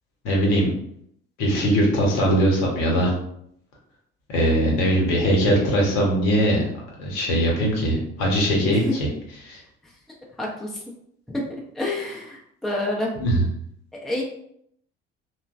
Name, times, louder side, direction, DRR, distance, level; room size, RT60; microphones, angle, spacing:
voice 1, 0.2-0.7 1.4-3.1 4.3-6.7 7.0-9.1 9.4-9.6 13.2-13.4, equal, 60° left, -1 dB, 0.9 m, -21 dB
voice 2, 10.4-10.8 11.3-11.5 11.8-13.1 14.0-14.2, left 2 dB, ahead, -2 dB, 0.5 m, -28 dB
3.0 x 2.1 x 2.5 m, 0.70 s
figure-of-eight pair, 55°, 32 cm